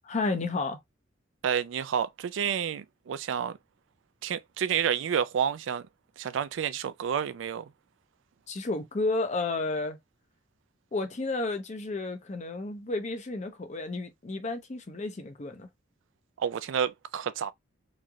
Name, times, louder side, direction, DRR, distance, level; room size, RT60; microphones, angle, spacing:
voice 1, 0.0-0.8 8.5-10.0 10.9-15.7, left 3 dB, 40° left, 0.6 m, -32 dB
voice 2, 1.4-3.6 4.2-5.8 6.2-7.7 16.4-17.5, right 8 dB, 70° right, 0.3 m, -29 dB
3.1 x 2.7 x 2.3 m
head